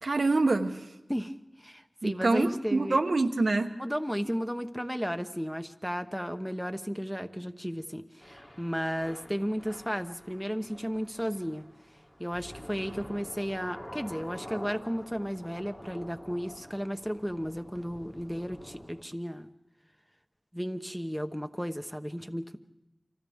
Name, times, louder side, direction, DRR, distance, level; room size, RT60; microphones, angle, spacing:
voice 1, 0.0-0.9 2.0-3.7, right 3 dB, 80° right, 5 dB, 1.0 m, -26 dB
voice 2, 1.6-3.0 3.8-11.6 12.2-19.5 20.5-22.6, equal, ahead, 7 dB, 1.0 m, -34 dB
Thunder / Rain, 8.2-19.0, equal, 20° left, 2.0 m, -48 dB
30.0 x 25.0 x 3.6 m, 0.98 s
wide cardioid pair, 55°, 0 cm